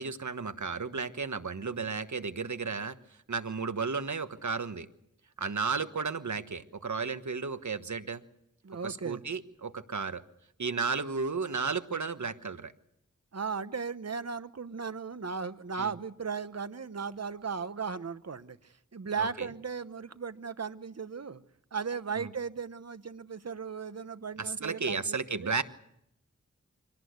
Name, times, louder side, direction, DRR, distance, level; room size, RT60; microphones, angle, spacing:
voice 1, 0.0-3.0 3.3-4.9 5.4-8.2 8.8-10.2 10.6-12.7 15.8-15.9 19.2-19.5 22.2-22.3 24.4-25.6, right 5 dB, 70° right, 1.3 m, -33 dB
voice 2, 8.6-9.2 13.3-21.4 21.7-25.5, right 5 dB, 55° right, 1.0 m, -36 dB
25.0 x 18.0 x 8.1 m
wide cardioid pair, 50°, 30 cm